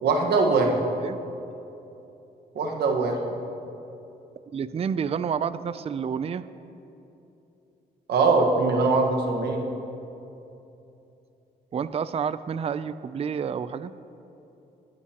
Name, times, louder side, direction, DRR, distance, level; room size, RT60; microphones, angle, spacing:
voice 1, 0.0-0.9 2.5-3.4 8.1-9.6, right 3 dB, 80° right, 2 dB, 1.4 m, -22 dB
voice 2, 4.5-6.4 11.7-13.9, right 7 dB, 35° right, 14 dB, 0.4 m, -29 dB
21.0 x 9.7 x 2.9 m, 2.9 s
cardioid pair, 80°, 17 cm